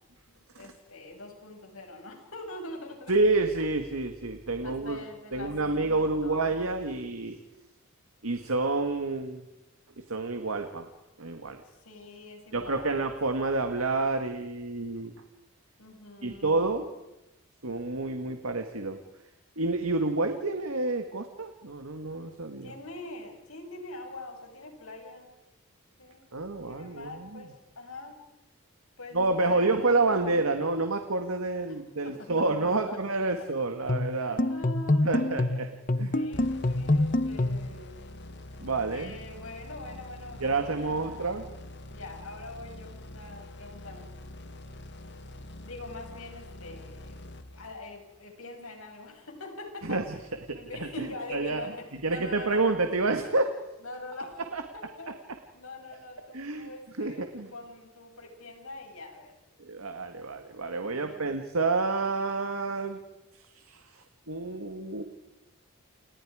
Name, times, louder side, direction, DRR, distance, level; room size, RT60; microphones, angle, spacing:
voice 1, 0.3-3.1 4.6-6.6 11.6-13.1 15.8-16.6 22.6-25.3 26.0-26.3 26.7-28.2 29.0-30.7 32.0-33.0 33.4-33.5 33.8-33.9 34.2-35.3 36.1-38.1 38.9-41.5 41.9-44.1 45.6-50.1 50.5-52.8 53.8-54.4 54.7-55.2 55.5-59.3 60.8-61.4, left 2 dB, 80° left, 3 dB, 6.5 m, -44 dB
voice 2, 3.1-5.0 5.3-7.4 8.2-9.4 10.1-10.9 11.2-11.6 12.5-15.1 16.2-16.9 17.6-19.0 19.6-22.7 26.3-27.4 29.1-34.4 35.0-35.7 36.0-36.2 38.6-39.1 40.4-41.4 49.8-50.0 50.5-51.6 52.0-53.5 54.5-54.6 55.1-55.2 56.3-56.7 57.0-57.5 59.6-63.0 63.3-65.0, right 3 dB, 85° right, 6 dB, 1.8 m, -29 dB
sound 1, 33.9-37.7, left 1 dB, 35° left, 1.0 m, -26 dB
sound 2, 36.3-48.0, left 1 dB, 55° left, 1.7 m, -45 dB
29.5 x 29.0 x 5.0 m, 0.97 s
head